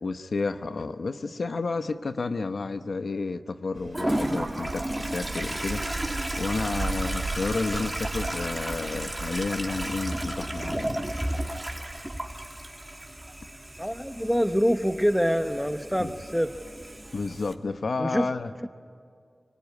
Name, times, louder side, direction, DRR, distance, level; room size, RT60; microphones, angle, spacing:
voice 1, 0.0-10.9 16.0-16.1 17.1-18.5, left 3 dB, 80° left, 0.9 m, -31 dB
sound 1, 3.7-12.1, right 3 dB, 70° right, 5.9 m, -37 dB
Toilet flush, 3.9-17.5, right 1 dB, 15° right, 2.8 m, -33 dB
voice 2, 13.8-16.5 18.0-18.3 18.6-18.7, equal, ahead, 1.0 m, -25 dB
25.5 x 23.5 x 9.6 m
cardioid pair, 50°, 0 cm